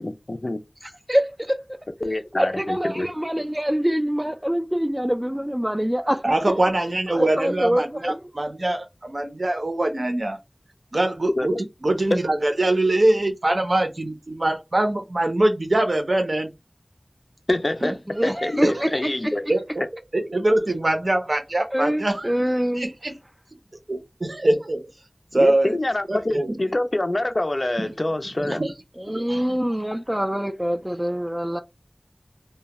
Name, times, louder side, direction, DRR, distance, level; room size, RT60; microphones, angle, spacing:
voice 1, 0.0-0.6 2.0-3.1 11.4-11.5 12.1-12.2 17.5-19.4 25.3-28.6, left 1 dB, 55° left, 0.4 m, -26 dB
voice 2, 0.8-1.6 2.4-6.3 7.1-8.2 18.1-18.9 19.2-19.3 21.7-22.9 29.0-31.6, equal, 10° right, 0.5 m, -25 dB
voice 3, 6.2-10.4 10.9-11.5 11.8-16.5 17.8-17.9 18.6-18.7 19.5-19.6 20.1-22.3 22.8-23.1 23.9-24.9 25.3-25.8 26.1-26.5 28.4-28.7 29.3-29.4, right 1 dB, 70° right, 0.7 m, -23 dB
2.3 x 2.1 x 2.8 m
wide cardioid pair, 40°, 0 cm